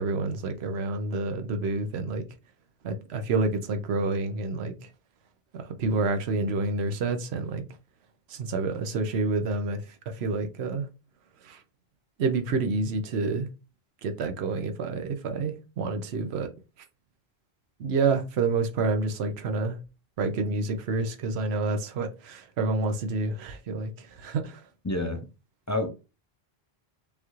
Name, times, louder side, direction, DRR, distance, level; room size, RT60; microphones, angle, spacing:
voice 1, 0.0-2.2 2.8-4.9 5.5-7.6 8.3-10.9 11.4-11.6 12.2-13.5 14.0-16.5 17.8-19.8 20.2-24.6, right 3 dB, 85° right, 0.9 m, -28 dB
voice 2, 24.8-25.2 25.7-25.9, left 2 dB, 25° left, 0.4 m, -27 dB
5.3 x 2.4 x 3.0 m
omnidirectional pair, 1.0 m